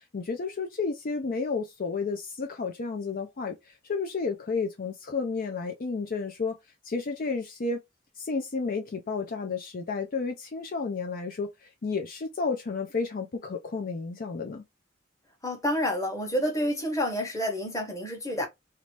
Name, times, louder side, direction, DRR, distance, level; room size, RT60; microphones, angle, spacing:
voice 1, 0.0-6.6 6.8-7.8 8.2-14.6, left 4 dB, 50° left, 0.5 m, -32 dB
voice 2, 15.4-18.5, equal, 15° left, 1.2 m, -29 dB
3.0 x 2.9 x 3.2 m
head